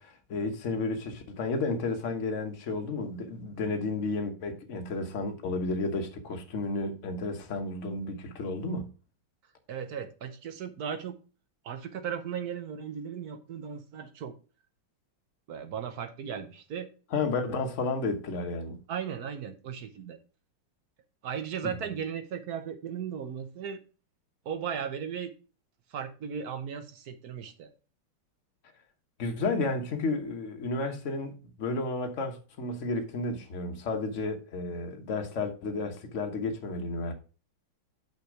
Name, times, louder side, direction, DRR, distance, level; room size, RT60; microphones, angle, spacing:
voice 1, 0.0-8.9 17.1-18.8 21.6-21.7 29.2-37.1, left 3 dB, 45° left, 1.2 m, -32 dB
voice 2, 9.7-11.2 11.6-14.3 15.5-16.9 18.9-20.2 21.2-23.8 24.4-25.3 25.9-27.7, right 7 dB, 60° right, 1.1 m, -36 dB
6.2 x 6.0 x 4.8 m
omnidirectional pair, 2.3 m